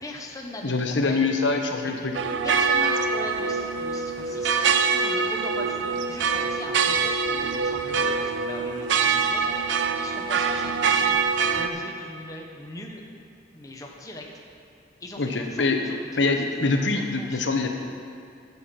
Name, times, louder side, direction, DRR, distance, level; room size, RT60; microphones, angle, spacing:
voice 1, 0.0-1.3 1.8-2.1 2.4-4.5 4.8-11.1 11.5-13.0 13.5-14.2 15.0-17.6, left 1 dB, 20° left, 0 dB, 0.9 m, -40 dB
voice 2, 0.6-2.1 15.2-15.8 16.2-17.7, left 3 dB, 70° left, 4 dB, 0.9 m, -24 dB
sound 1, 2.1-11.7, right 5 dB, 75° right, 0.5 m, -24 dB
11.5 x 7.1 x 5.9 m, 2.3 s
head